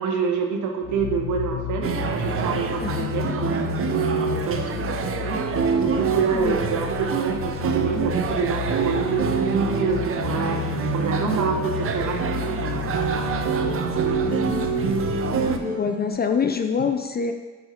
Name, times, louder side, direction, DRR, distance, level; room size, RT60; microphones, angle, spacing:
voice 1, 0.0-3.6 4.5-5.5 5.8-10.6 10.9-12.9 13.4-14.0, right 5 dB, 80° right, 3 dB, 1.0 m, -28 dB
sound 1, 0.8-15.6, left 10 dB, 80° left, 0.6 m, -32 dB
sound 2, 1.8-15.6, right 6 dB, 45° right, 0.6 m, -26 dB
voice 2, 2.8-3.1 6.3-6.6 15.6-17.3, left 6 dB, 35° left, 7 dB, 0.4 m, -25 dB
sound 3, 10.3-16.1, equal, 25° right, 2.0 m, -33 dB
5.5 x 5.5 x 4.4 m, 1.3 s
cardioid pair, 90°, 30 cm